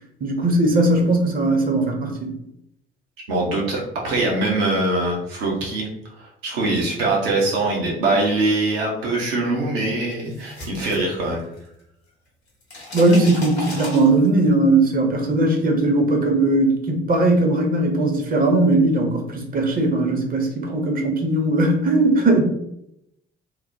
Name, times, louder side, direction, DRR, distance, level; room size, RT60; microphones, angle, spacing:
voice 1, 0.2-2.3 12.9-22.4, right 2 dB, 30° right, 3 dB, 0.6 m, -19 dB
voice 2, 3.3-11.4, right 2 dB, 70° right, -2 dB, 0.8 m, -23 dB
sound 1, 10.1-11.8 12.1-14.5, left 2 dB, 90° left, 0.6 m, -35 dB
3.0 x 2.0 x 2.6 m, 0.79 s
figure-of-eight pair, 50°, 31 cm